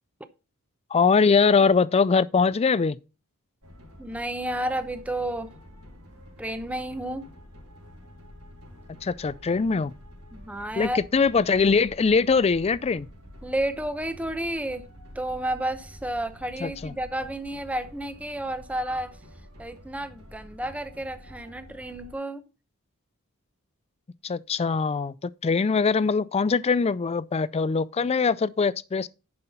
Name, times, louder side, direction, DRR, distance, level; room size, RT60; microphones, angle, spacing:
voice 1, 0.9-3.0 9.0-9.9 10.8-13.1 16.6-16.9 24.2-29.1, left 5 dB, 25° left, 0.4 m, -22 dB
sound 1, 3.6-22.1, equal, 80° right, 3.8 m, -48 dB
voice 2, 4.0-5.5 6.4-7.3 10.3-11.0 13.4-14.8 15.1-19.2 19.6-22.4, right 1 dB, 5° right, 0.8 m, -31 dB
11.0 x 5.6 x 4.1 m
head